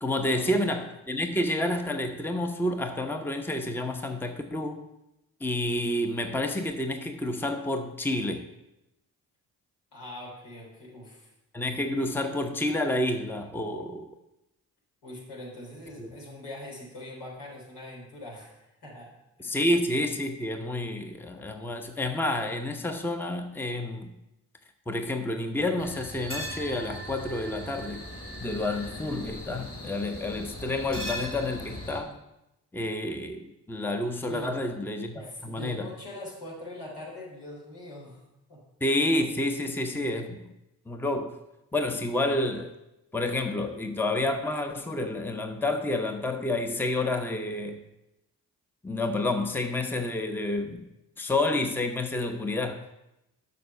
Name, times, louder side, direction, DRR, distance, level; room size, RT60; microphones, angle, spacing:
voice 1, 0.0-4.9 5.4-8.5 11.5-14.1 16.0-16.1 19.4-24.1 24.9-28.0 28.4-32.2 32.7-35.9 38.8-40.5 40.9-41.3 41.7-42.7 43.1-47.8 48.8-50.8 51.2-52.8, left 1 dB, 5° left, 0.9 m, -29 dB
voice 2, 9.9-11.3 11.7-11.8 15.0-19.1 19.4-19.7 34.3-34.7 35.1-38.2 38.5-38.6, left 1 dB, 75° left, 3.6 m, -42 dB
sound 1, 25.8-32.0, equal, 30° left, 2.9 m, -39 dB
6.8 x 6.1 x 6.5 m
hypercardioid pair, 40°, 41 cm